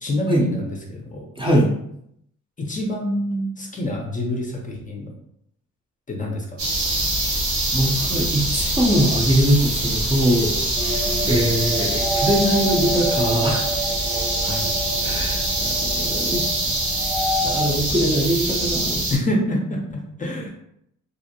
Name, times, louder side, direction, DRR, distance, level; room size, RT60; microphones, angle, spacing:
voice 1, 0.0-1.3 2.6-5.1 6.1-6.6 11.2-11.5 14.4-14.6 19.1-20.5, left 1 dB, 25° left, 0 dB, 0.6 m, -27 dB
voice 2, 1.4-1.7 7.7-13.7 15.0-16.7 17.4-19.0, equal, 15° right, -2 dB, 0.6 m, -22 dB
sound 1, 6.6-19.2, right 1 dB, 70° right, 0.9 m, -24 dB
sound 2, 10.8-17.7, right 1 dB, 40° right, 0.8 m, -28 dB
2.5 x 2.1 x 2.7 m, 0.73 s
cardioid pair, 90°, 30 cm